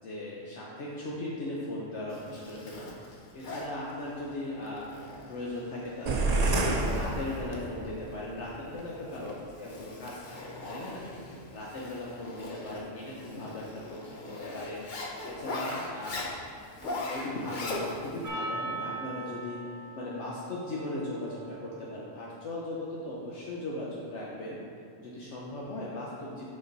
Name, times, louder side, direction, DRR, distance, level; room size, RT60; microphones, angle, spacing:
voice 1, 0.0-2.9 3.3-4.9 5.3-9.3 9.6-11.0 11.5-14.8 15.3-16.3 16.8-19.6 19.9-24.6 25.0-26.5, left 1 dB, 70° left, -5 dB, 1.1 m, -38 dB
Zipper (clothing), 2.1-18.3, left 2 dB, 45° left, 0.8 m, -40 dB
sound 1, 6.1-7.9, right 3 dB, 50° right, 0.5 m, -28 dB
Percussion, 18.2-22.8, right 2 dB, 15° right, 0.8 m, -41 dB
6.5 x 5.3 x 4.0 m, 2.3 s
omnidirectional pair, 1.3 m